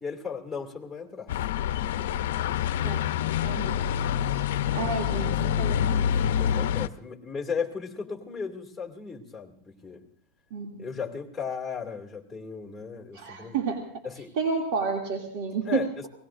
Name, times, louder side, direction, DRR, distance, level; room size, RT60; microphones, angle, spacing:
voice 1, 0.0-1.4 5.5-5.7 6.4-10.0 10.8-13.6 14.0-14.3 15.6-16.1, left 6 dB, 5° left, 1 dB, 2.4 m, -35 dB
sound 1, 1.3-6.9, left 9 dB, 80° left, 0.6 m, -26 dB
voice 2, 3.4-3.8 4.7-6.3 10.5-10.9 13.1-13.8 14.4-15.9, right 5 dB, 65° right, 1 dB, 2.5 m, -31 dB
29.5 x 18.5 x 2.6 m, 0.62 s
supercardioid pair, 135°, 0 cm